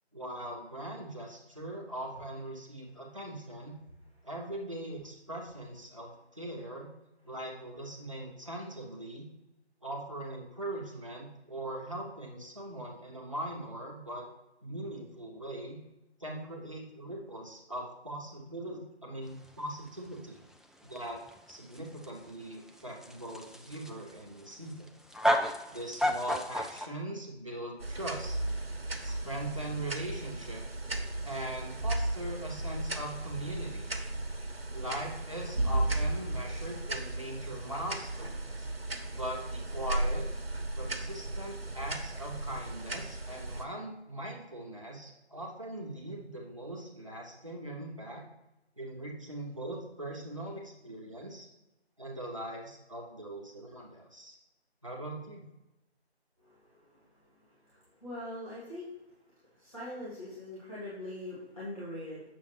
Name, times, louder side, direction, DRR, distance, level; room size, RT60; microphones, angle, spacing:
voice 1, 0.1-3.8 4.2-6.9 7.2-9.2 9.8-14.3 14.6-15.8 16.2-20.4 20.8-21.2 21.5-24.9 25.7-28.4 29.0-30.6 31.2-33.9 34.7-38.7 39.1-40.3 40.8-48.2 48.8-51.5 52.0-54.4 54.8-55.4, right 1 dB, 30° right, -2 dB, 1.0 m, -40 dB
sound 1, 19.3-26.9, equal, ahead, 0.3 m, -33 dB
sound 2, 27.8-43.7, right 2 dB, 60° right, 1.0 m, -35 dB
voice 2, 58.0-58.8 59.6-62.2, left 1 dB, 30° left, -11 dB, 1.8 m, -41 dB
8.2 x 6.3 x 3.1 m, 0.97 s
figure-of-eight pair, 170°, 34 cm